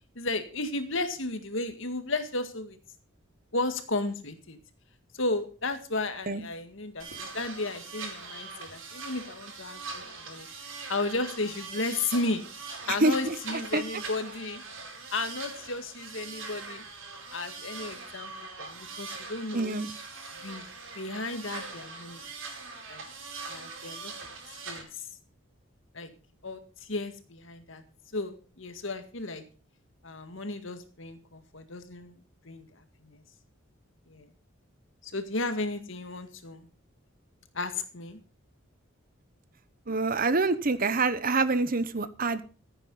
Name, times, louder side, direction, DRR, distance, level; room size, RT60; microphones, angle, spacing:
voice 1, 0.2-2.8 3.5-4.6 5.1-12.4 12.9-14.6 15.1-16.8 17.3-18.3 18.6-19.8 20.4-20.7 21.0-22.2 22.9-23.0 23.5-24.1 24.7-25.1 25.9-26.1 26.4-27.8 28.1-29.4 30.0-33.2 34.1-34.3 35.0-36.7 37.5-38.2, left 2 dB, 65° left, 8 dB, 2.0 m, -34 dB
sound 1, 7.0-24.8, right 4 dB, 70° right, 4.9 m, -42 dB
voice 2, 12.9-13.3 13.7-13.8 19.5-19.9 39.9-42.4, right 3 dB, 45° right, 14 dB, 0.9 m, -26 dB
15.5 x 9.0 x 5.5 m, 0.37 s
head